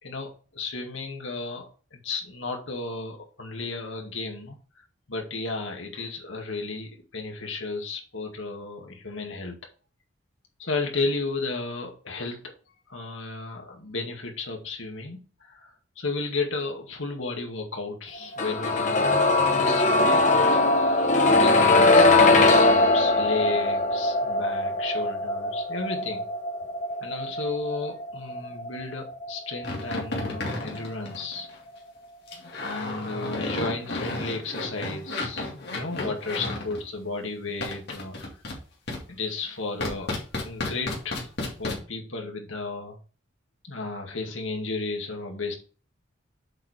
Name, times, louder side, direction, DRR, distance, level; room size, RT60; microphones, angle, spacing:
voice 1, 0.0-1.7 1.9-9.6 10.6-12.5 12.9-26.3 27.0-31.5 32.3-38.4 39.1-40.2 40.4-41.3 41.6-43.0 43.6-45.5, left 3 dB, 75° left, 2 dB, 2.1 m, -33 dB
sound 1, 18.4-30.2 30.5-30.6, left 2 dB, 40° left, 1.3 m, -21 dB
sound 2, 29.6-31.6 32.3-36.8 37.6-38.6 38.9-39.0 39.8-41.8, left 2 dB, 55° left, 2.3 m, -32 dB
7.5 x 4.7 x 5.1 m, 0.38 s
head